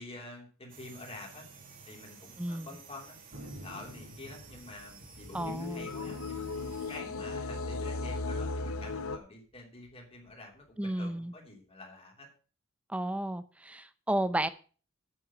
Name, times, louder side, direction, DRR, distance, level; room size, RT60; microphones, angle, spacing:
voice 1, 0.0-1.4 1.9-12.3, left 2 dB, 30° left, 0 dB, 3.2 m, -48 dB
sound 1, 0.7-7.0, right 5 dB, 40° right, 2.0 m, -53 dB
Thunder, 3.3-8.1 8.4-8.5 8.7-9.3 9.7-10.9, equal, 70° right, 4.3 m, -51 dB
sound 2, 5.1-9.2, left 3 dB, 75° left, 0.8 m, -36 dB
voice 2, 5.3-5.9 10.8-11.3 12.9-14.5, right 1 dB, 5° right, 12 dB, 0.4 m, -32 dB
8.6 x 6.3 x 7.2 m, 0.39 s
head